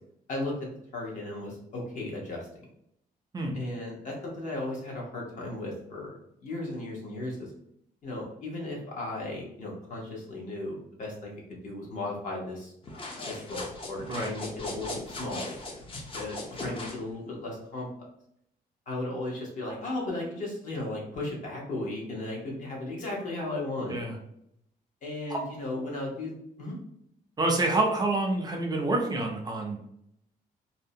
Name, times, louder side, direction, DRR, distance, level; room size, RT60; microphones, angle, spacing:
voice 1, 0.3-2.5 3.5-7.5 8.0-12.7 13.3-15.6 16.1-17.9 18.9-24.0 25.0-26.8, left 2 dB, 55° left, -2 dB, 0.9 m, -36 dB
sound 1, 12.8-17.0, left 2 dB, 35° left, 0.5 m, -38 dB
voice 2, 27.4-29.8, right 2 dB, 25° right, 1 dB, 0.4 m, -27 dB
2.6 x 2.0 x 2.7 m, 0.73 s
cardioid pair, 155°, 15 cm